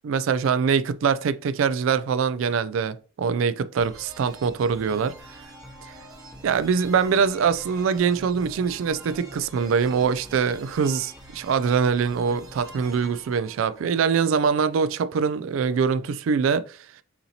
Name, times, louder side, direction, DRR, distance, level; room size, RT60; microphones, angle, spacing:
voice 1, 0.0-5.1 6.4-16.8, right 6 dB, 85° right, 0.3 m, -23 dB
sound 1, 3.8-14.4, right 1 dB, 20° right, 0.7 m, -45 dB
6.7 x 2.7 x 2.8 m
head